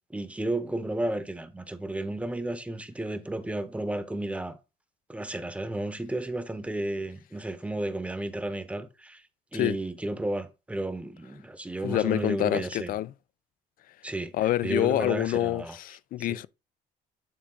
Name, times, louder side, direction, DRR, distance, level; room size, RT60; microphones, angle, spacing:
voice 1, 0.1-4.6 5.1-9.2 9.5-13.0 14.0-14.3 14.6-15.8 16.2-16.4, right 1 dB, 5° right, 0.9 m, -32 dB
voice 2, 11.8-13.1 14.3-16.5, left 14 dB, 55° left, 0.4 m, -27 dB
8.6 x 3.5 x 3.8 m
cardioid pair, 110°, 17 cm